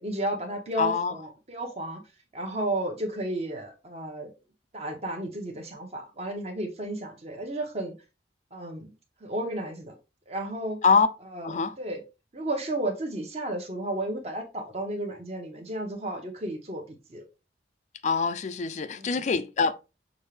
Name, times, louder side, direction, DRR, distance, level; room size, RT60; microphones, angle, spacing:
voice 1, 0.0-2.0 2.3-4.3 4.7-7.9 8.5-8.9 9.2-10.0 10.3-10.8 11.3-12.0 12.3-17.2 19.0-19.2, right 1 dB, 35° right, 1.0 m, -33 dB
voice 2, 0.8-1.2 10.8-11.1 11.4-11.8 18.0-19.7, left 5 dB, 40° left, 0.4 m, -24 dB
6.3 x 2.5 x 3.3 m
head